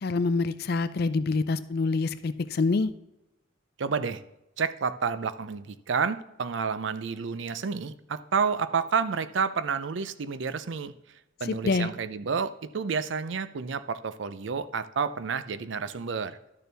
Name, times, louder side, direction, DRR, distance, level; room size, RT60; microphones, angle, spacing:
voice 1, 0.0-2.9 11.5-11.9, left 3 dB, 50° left, 14 dB, 0.4 m, -26 dB
voice 2, 3.8-4.2 4.6-10.9 11.4-16.4, right 5 dB, 70° right, 13 dB, 0.5 m, -30 dB
12.0 x 6.8 x 3.4 m, 0.91 s
head